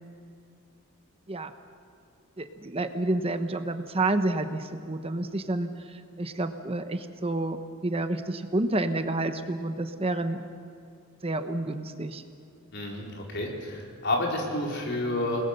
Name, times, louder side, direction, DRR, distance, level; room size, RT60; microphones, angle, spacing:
voice 1, 2.4-7.6 7.8-10.5 11.2-12.2, right 2 dB, 30° right, 8 dB, 1.0 m, -29 dB
voice 2, 12.7-15.4, left 1 dB, 55° left, -1 dB, 4.7 m, -30 dB
29.5 x 20.0 x 6.8 m, 2.5 s
head